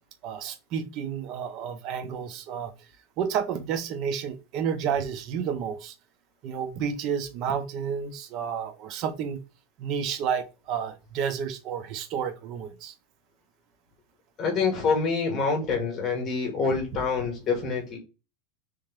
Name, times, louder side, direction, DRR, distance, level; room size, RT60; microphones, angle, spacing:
voice 1, 0.2-2.7 3.2-5.9 6.4-9.4 9.8-12.9, right 7 dB, 35° right, 0.5 m, -31 dB
voice 2, 14.4-18.0, left 4 dB, 20° left, 1.4 m, -26 dB
3.3 x 3.3 x 3.4 m
supercardioid pair, 170°, 0 cm